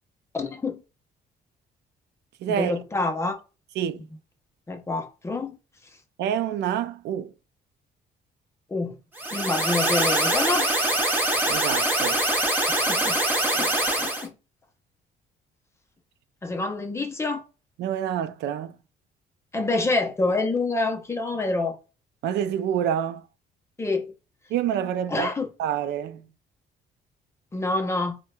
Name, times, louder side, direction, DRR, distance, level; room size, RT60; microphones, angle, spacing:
voice 1, 0.3-0.8 2.5-3.4 4.7-5.6 8.7-9.0 9.3-10.7 12.7-13.2 13.5-14.3 16.4-17.4 19.5-21.8 23.8-24.1 25.1-25.5 27.5-28.2, left 3 dB, 15° left, 0.6 m, -27 dB
voice 2, 2.4-2.7 3.8-4.1 6.2-7.3 11.5-12.2 17.8-18.7 22.2-23.3 24.5-25.3 25.6-26.3, right 9 dB, 90° right, 0.4 m, -27 dB
sound 1, 9.2-14.3, right 1 dB, 10° right, 0.9 m, -23 dB
4.4 x 2.1 x 2.2 m
cardioid pair, 145°, 17 cm